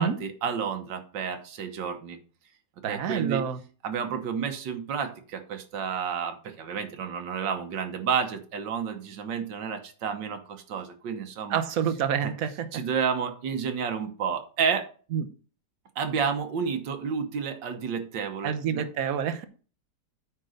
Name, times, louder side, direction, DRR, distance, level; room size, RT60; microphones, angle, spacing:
voice 1, 0.0-2.2 2.9-3.4 3.8-5.1 5.5-10.4 10.7-11.6 12.2-12.3 12.7-14.8 16.0-18.8, right 6 dB, 80° right, 7 dB, 1.8 m, -30 dB
voice 2, 2.8-3.6 11.5-12.7 15.1-15.3 18.4-19.4, right 8 dB, 60° right, 9 dB, 1.2 m, -27 dB
9.1 x 3.8 x 6.5 m, 0.39 s
omnidirectional pair, 1.9 m